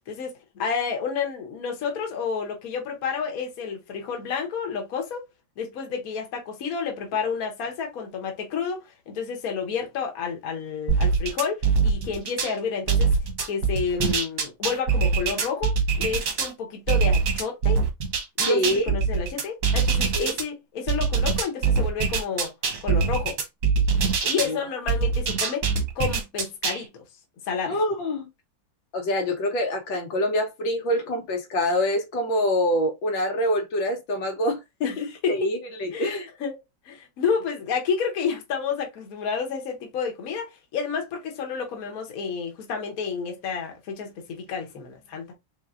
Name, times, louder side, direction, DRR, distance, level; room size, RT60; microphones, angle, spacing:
voice 1, 0.0-5.2 5.6-13.2 13.4-17.8 18.4-22.5 22.8-23.4 24.2-25.7 25.9-27.0 27.5-27.8 34.8-35.5 35.9-36.1 36.4-36.5 36.8-45.3, left 6 dB, 55° left, 1.3 m, -30 dB
sound 1, 10.9-12.5 12.9-16.5 16.9-20.4 20.9-24.5 24.9-26.8, right 5 dB, 50° right, 1.2 m, -23 dB
voice 2, 18.5-18.9 20.1-20.3 24.4-24.6 27.7-28.3 28.9-36.3, equal, 75° left, 1.7 m, -25 dB
4.2 x 3.4 x 2.4 m
omnidirectional pair, 2.1 m